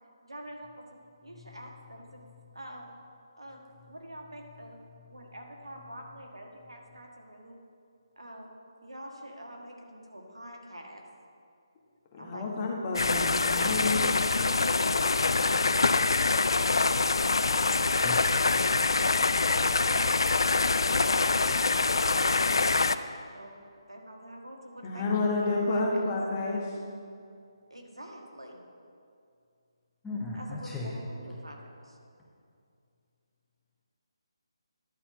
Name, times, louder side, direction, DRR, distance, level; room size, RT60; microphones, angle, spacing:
voice 1, 0.2-0.7 1.2-2.2 2.5-2.9 3.4-3.6 3.9-4.8 5.1-7.6 8.2-8.5 8.8-11.0 12.2-12.4 13.6-14.2 14.5-16.3 19.4-20.2 20.4-22.7 23.3-23.6 23.9-25.8 27.7-28.6 30.3-31.6, right 1 dB, 80° right, 1 dB, 1.6 m, -44 dB
voice 2, 1.3-1.7 2.2-2.4 4.9-5.1 17.8-18.4 30.0-30.9, left 3 dB, 5° left, -5 dB, 1.2 m, -39 dB
voice 3, 12.1-14.5 24.8-26.8, left 3 dB, 25° left, -2 dB, 1.3 m, -30 dB
sound 1, 12.9-22.9, left 3 dB, 60° left, 0.3 m, -25 dB
11.5 x 4.3 x 7.1 m, 2.4 s
figure-of-eight pair, 150°, 3 cm